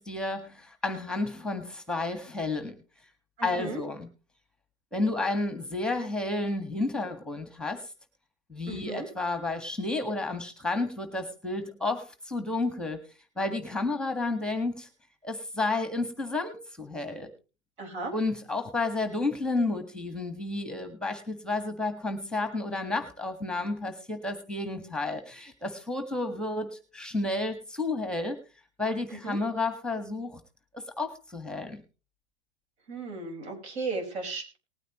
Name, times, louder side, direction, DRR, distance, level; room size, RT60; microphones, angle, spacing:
voice 1, 0.0-2.8 3.4-4.1 4.9-7.9 8.5-13.0 13.4-14.9 15.2-17.3 18.1-28.4 28.8-30.4 30.7-31.8, left 2 dB, ahead, 8 dB, 1.6 m, -31 dB
voice 2, 3.4-3.8 8.7-9.1 17.8-18.1 29.2-29.4 32.9-34.6, right 3 dB, 70° right, 3 dB, 5.4 m, -35 dB
19.5 x 9.1 x 3.1 m, 0.33 s
hypercardioid pair, 120°, 34 cm